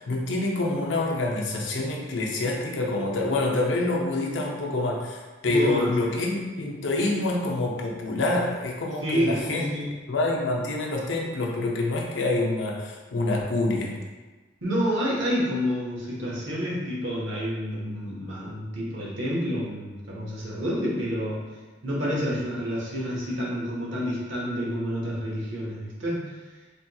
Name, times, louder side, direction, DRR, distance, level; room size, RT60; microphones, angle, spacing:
voice 1, 0.0-9.7 10.1-14.0, left 2 dB, 80° left, -1 dB, 0.5 m, -26 dB
voice 2, 5.5-5.9 9.0-9.9 14.6-21.4 21.8-26.3, equal, 90° right, -5 dB, 1.0 m, -29 dB
3.3 x 2.8 x 2.2 m, 1.2 s
head